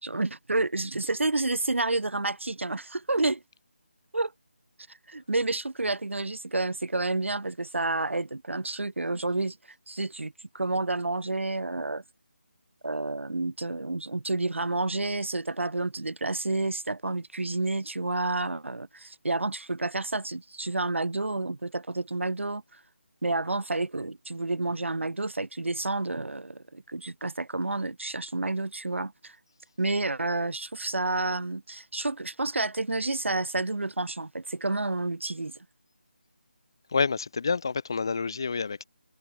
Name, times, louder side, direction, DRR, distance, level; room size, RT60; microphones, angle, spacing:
voice 1, 0.0-3.4 4.1-4.3 5.1-9.6 9.9-12.0 12.8-22.6 23.2-29.4 29.8-35.5, right 2 dB, 85° right, 3.1 m, -30 dB
voice 2, 36.9-38.8, left 5 dB, 20° left, 0.7 m, -28 dB
figure-of-eight pair, 180°, 7 cm